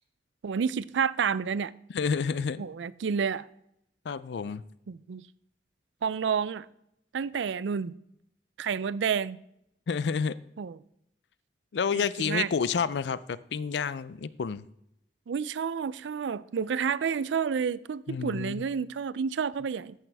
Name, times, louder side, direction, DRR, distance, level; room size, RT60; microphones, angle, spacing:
voice 1, 0.4-1.7 2.6-3.4 4.9-5.2 6.0-6.7 7.1-7.9 8.6-9.4 10.6-10.8 11.9-12.5 15.3-19.9, right 6 dB, 85° right, 0.4 m, -30 dB
voice 2, 1.9-2.6 4.1-4.6 9.9-10.4 11.7-14.6 18.1-18.6, left 6 dB, 70° left, 0.4 m, -29 dB
14.0 x 7.3 x 3.4 m
head